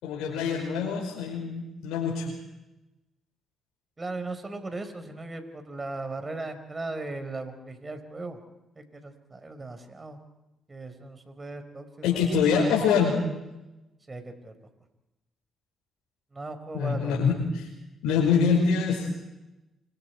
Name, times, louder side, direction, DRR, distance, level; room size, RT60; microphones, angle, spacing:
voice 1, 0.0-2.3 12.0-13.2 16.7-17.7 18.0-19.1, left 6 dB, 85° left, -2 dB, 5.3 m, -25 dB
voice 2, 4.0-8.4 8.8-10.2 10.7-12.7 14.1-14.5 16.3-17.2, right 2 dB, 30° right, 8 dB, 4.8 m, -37 dB
29.5 x 25.5 x 4.7 m, 0.99 s
supercardioid pair, 65°, 0 cm